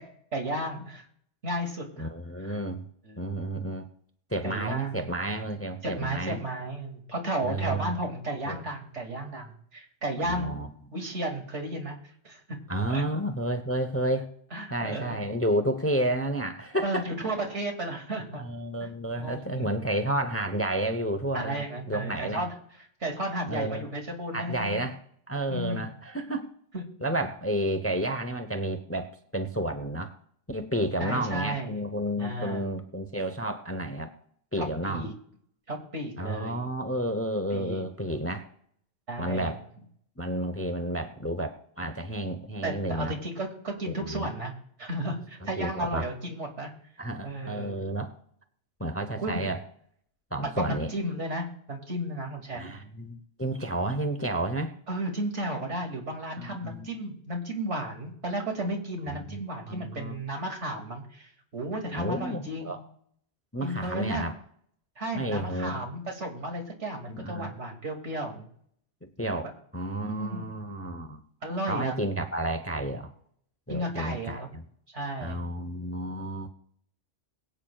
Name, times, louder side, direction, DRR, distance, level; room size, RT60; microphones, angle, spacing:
voice 1, 0.3-1.0 1.4-2.1 2.4-2.6 3.0-3.4 4.4-5.0 5.8-10.6 10.9-12.0 12.2-12.6 12.9-13.1 14.5-15.3 16.8-18.4 18.8-19.7 21.3-24.9 25.5-25.9 26.7-26.8 31.0-31.8 32.2-32.7 34.5-35.1 35.7-36.7 37.5-37.8 39.1-39.6 42.6-44.5 44.8-46.7 47.2-47.7 49.2-49.5 50.6-52.7 54.9-62.7 63.6-64.3 65.0-68.5 70.0-70.5 71.4-71.9 73.7-74.5 74.9-75.4, right 1 dB, 75° right, 2 dB, 2.8 m, -33 dB
voice 2, 2.0-2.9 3.2-3.9 4.3-6.4 7.4-7.9 8.5-8.6 10.2-10.7 12.7-14.3 14.7-17.0 18.4-22.4 23.5-23.8 24.3-25.0 25.3-26.5 27.0-30.1 30.5-34.1 34.5-35.1 36.2-38.5 39.2-39.6 40.2-43.1 43.9-44.3 45.6-46.1 47.0-48.1 48.8-49.6 50.3-50.9 52.5-54.7 56.4-56.9 59.1-59.2 59.7-60.2 61.9-62.8 63.5-64.3 65.1-65.9 67.1-67.5 69.0-69.5 69.7-71.2 71.7-73.1 73.7-74.6 75.2-76.5, right 1 dB, 15° left, 8 dB, 0.7 m, -31 dB
22.5 x 8.9 x 2.4 m, 0.64 s
omnidirectional pair, 1.2 m